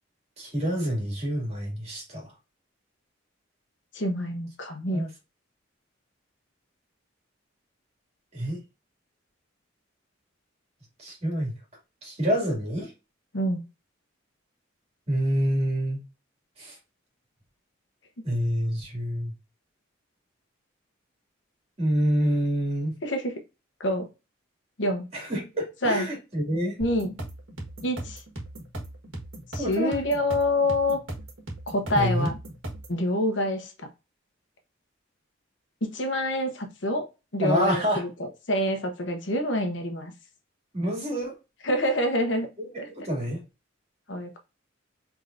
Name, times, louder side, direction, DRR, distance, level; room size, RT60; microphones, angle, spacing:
voice 1, 0.4-2.3 4.9-5.1 8.3-8.6 11.0-11.5 12.0-12.9 15.1-16.0 16.6-16.8 18.2-19.3 21.8-22.9 25.1-26.8 29.6-29.9 31.9-32.3 37.4-38.0 40.7-41.3 42.6-43.4, equal, 35° right, 2.4 m, -27 dB
voice 2, 3.9-5.1 13.3-13.6 23.0-23.3 23.8-24.1 24.8-25.1 25.8-26.1 26.8-27.1 27.8-28.2 29.5-31.0 31.7-32.4 32.9-33.7 35.8-37.1 37.3-40.1 41.6-42.5 42.8-42.9 44.1-44.4, left 1 dB, 60° left, 1.0 m, -27 dB
sound 1, 26.8-33.0, right 1 dB, 80° right, 1.5 m, -38 dB
4.9 x 3.6 x 2.6 m
head